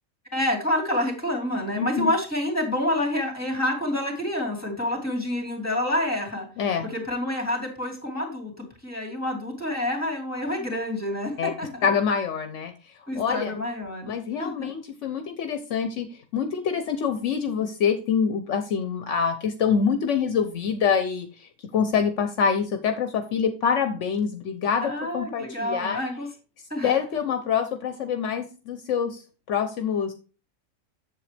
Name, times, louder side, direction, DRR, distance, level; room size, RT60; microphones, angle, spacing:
voice 1, 0.3-6.5 6.8-8.5 8.8-11.9 13.1-14.1 14.4-14.7 24.8-26.3 26.7-27.0, left 1 dB, 10° left, 2 dB, 2.5 m, -28 dB
voice 2, 1.8-2.1 6.6-6.9 11.4-11.5 11.8-12.7 13.2-13.5 14.1-16.1 16.3-26.0 26.8-29.2 29.5-30.1, left 6 dB, 70° left, 8 dB, 1.0 m, -25 dB
7.7 x 7.5 x 3.3 m, 0.34 s
omnidirectional pair, 1.3 m